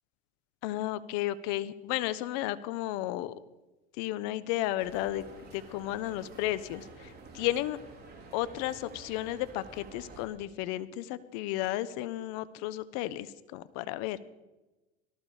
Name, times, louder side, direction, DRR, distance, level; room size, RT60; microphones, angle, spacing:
voice 1, 0.6-3.3 4.0-7.8 8.3-14.2, left 14 dB, 65° left, 16 dB, 1.0 m, -33 dB
sound 1, 4.8-10.3, right 3 dB, 35° right, 5.7 m, -50 dB
18.5 x 14.0 x 5.0 m, 1.1 s
hypercardioid pair, 90°, 29 cm